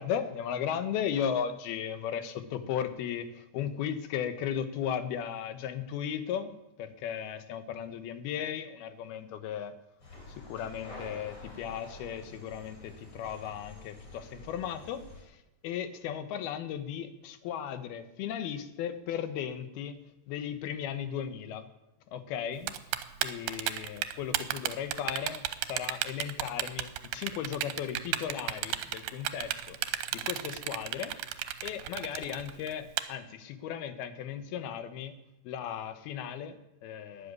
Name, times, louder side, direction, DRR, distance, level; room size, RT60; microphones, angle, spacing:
voice 1, 0.0-9.7 10.4-21.7 22.1-35.1 35.4-37.3, left 9 dB, 85° left, 10 dB, 3.1 m, -36 dB
sound 1, 10.0-15.2, left 1 dB, 35° left, 4.5 m, -48 dB
Typing, 22.7-33.0, right 13 dB, 80° right, 2.6 m, -33 dB
12.0 x 11.0 x 9.6 m, 0.88 s
omnidirectional pair, 4.3 m